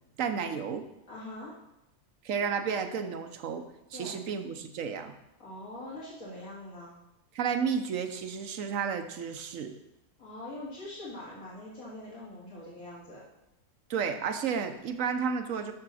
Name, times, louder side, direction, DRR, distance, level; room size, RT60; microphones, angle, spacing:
voice 1, 0.2-0.8 2.2-3.7 3.9-5.1 7.3-9.8 13.9-15.7, right 6 dB, 65° right, 8 dB, 1.2 m, -32 dB
voice 2, 1.1-1.5 3.9-4.2 5.4-6.9 10.2-13.2, left 1 dB, 65° left, -7 dB, 3.4 m, -43 dB
7.6 x 6.4 x 6.3 m, 0.89 s
omnidirectional pair, 1.5 m